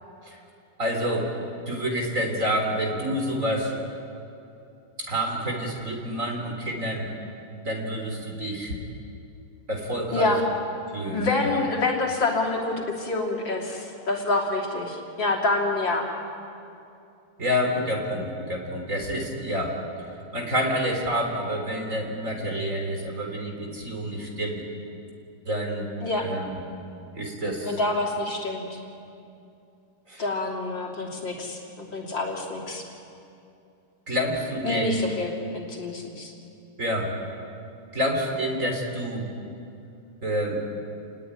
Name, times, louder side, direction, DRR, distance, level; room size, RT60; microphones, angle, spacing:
voice 1, 0.8-1.4 1.7-3.7 5.0-7.1 7.6-8.8 9.7-10.4 10.9-11.6 17.4-19.8 20.3-24.6 25.5-25.9 26.2-26.6 27.1-27.8 30.1-30.3 34.1-35.0 36.8-37.1 37.9-39.3 40.2-40.6, equal, 35° right, 1 dB, 3.9 m, -28 dB
voice 2, 10.1-10.4 11.1-16.1 26.0-26.3 27.6-28.8 30.2-32.8 34.6-36.3, left 2 dB, 60° left, -1 dB, 3.8 m, -27 dB
29.0 x 19.5 x 9.7 m, 2.6 s
omnidirectional pair, 2.4 m